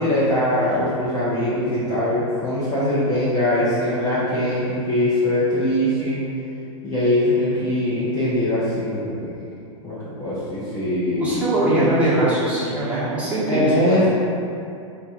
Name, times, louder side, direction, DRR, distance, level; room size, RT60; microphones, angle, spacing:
voice 1, 0.0-6.2 6.8-9.4 9.8-11.9 13.5-14.1, left 1 dB, 20° left, -10 dB, 0.9 m, -22 dB
voice 2, 11.1-14.0, right 1 dB, 10° right, -11 dB, 1.4 m, -21 dB
4.0 x 2.8 x 3.7 m, 2.6 s
hypercardioid pair, 125°, 17 cm